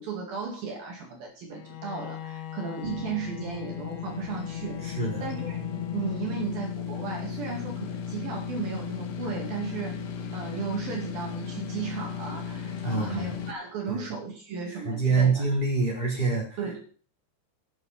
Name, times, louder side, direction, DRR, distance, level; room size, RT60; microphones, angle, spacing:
voice 1, 0.0-10.0 10.3-15.5 16.6-16.8, right 5 dB, 60° right, 1 dB, 3.6 m, -35 dB
Bowed string instrument, 1.5-6.9, left 11 dB, 65° left, 2.2 m, -39 dB
sound 1, 2.8-13.5, left 7 dB, 80° left, 1.4 m, -36 dB
voice 2, 4.8-5.2 12.8-13.3 13.9-14.0 14.8-16.4, right 4 dB, 10° left, -1 dB, 3.9 m, -25 dB
9.7 x 9.4 x 5.5 m, 0.41 s
omnidirectional pair, 5.2 m